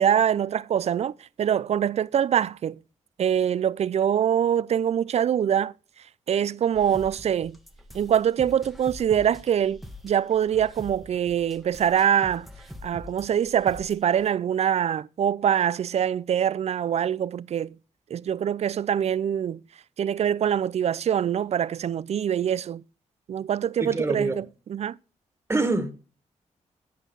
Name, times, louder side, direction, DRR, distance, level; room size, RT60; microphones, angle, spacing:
voice 1, 0.0-2.8 3.2-5.7 6.3-7.6 7.9-12.5 12.8-17.7 18.1-19.6 20.0-22.8 23.3-24.4 24.7-25.0, right 9 dB, 55° right, 0.4 m, -24 dB
sound 1, 6.7-14.3, left 1 dB, ahead, 1.4 m, -44 dB
voice 2, 23.8-24.4 25.5-25.9, right 2 dB, 20° right, 1.8 m, -25 dB
10.5 x 5.7 x 5.5 m
cardioid pair, 65°, 13 cm